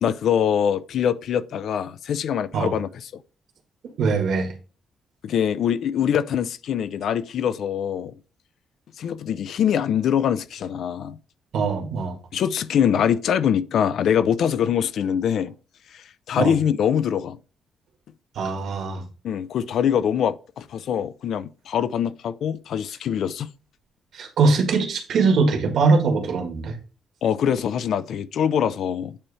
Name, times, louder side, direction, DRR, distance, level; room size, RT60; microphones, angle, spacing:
voice 1, 0.0-3.1 5.2-8.1 9.0-11.2 12.3-15.5 15.9-17.4 19.2-23.5 27.2-29.2, left 8 dB, 60° left, 0.5 m, -23 dB
voice 2, 4.0-4.5 11.5-12.2 16.4-16.5 18.4-19.1 24.1-26.7, right 4 dB, 60° right, 1.7 m, -21 dB
8.8 x 3.1 x 4.8 m
cardioid pair, 160°, 0 cm